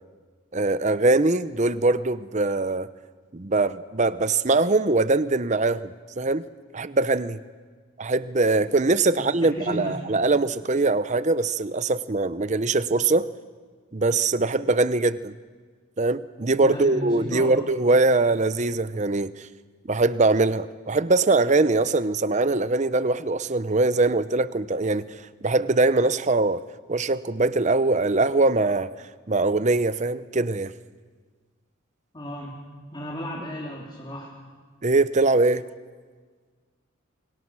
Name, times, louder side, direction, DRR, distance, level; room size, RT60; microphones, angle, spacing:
voice 1, 0.5-2.9 3.3-6.4 6.7-7.4 8.0-13.3 13.9-15.3 16.0-19.5 19.9-26.6 26.9-28.9 29.3-30.7 34.8-35.6, right 3 dB, 35° right, 14 dB, 0.7 m, -22 dB
voice 2, 9.2-9.9 16.6-17.6 32.1-32.5 32.9-34.3, equal, 20° left, -4 dB, 3.4 m, -34 dB
29.0 x 25.5 x 6.3 m, 1.5 s
head